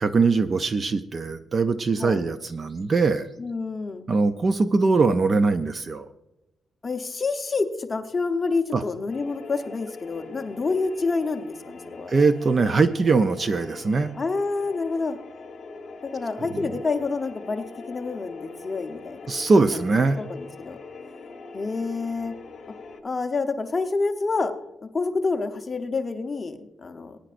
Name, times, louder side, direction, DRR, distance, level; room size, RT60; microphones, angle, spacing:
voice 1, 0.0-3.3 4.1-6.1 8.7-8.8 12.1-14.1 16.5-16.6 19.3-20.2, right 4 dB, 30° right, 11 dB, 0.4 m, -21 dB
voice 2, 3.4-4.1 6.8-12.1 14.2-15.2 16.0-19.2 20.2-20.8 21.5-22.3 23.0-24.5 24.8-27.2, left 3 dB, 25° left, 5 dB, 0.8 m, -28 dB
sound 1, 9.1-23.0, left 4 dB, 40° left, 1.3 m, -42 dB
21.0 x 10.0 x 2.5 m, 0.94 s
wide cardioid pair, 180°, 0 cm